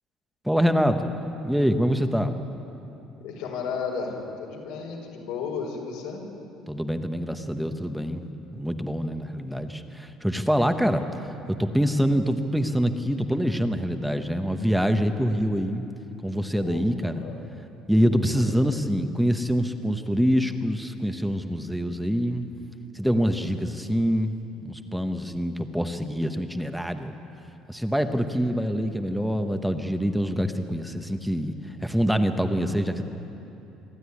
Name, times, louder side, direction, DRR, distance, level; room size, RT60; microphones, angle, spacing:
voice 1, 0.4-1.2 1.4-2.3 6.7-8.2 8.5-11.1 11.6-15.8 16.2-17.2 17.9-22.5 22.9-24.3 24.6-27.1 27.7-31.5 31.8-33.0, equal, ahead, 7 dB, 1.0 m, -25 dB
voice 2, 3.2-6.3 16.5-16.8 17.1-17.4 18.0-18.5, left 5 dB, 85° left, 0 dB, 4.9 m, -34 dB
26.5 x 12.5 x 9.7 m, 2.9 s
cardioid pair, 150°, 0 cm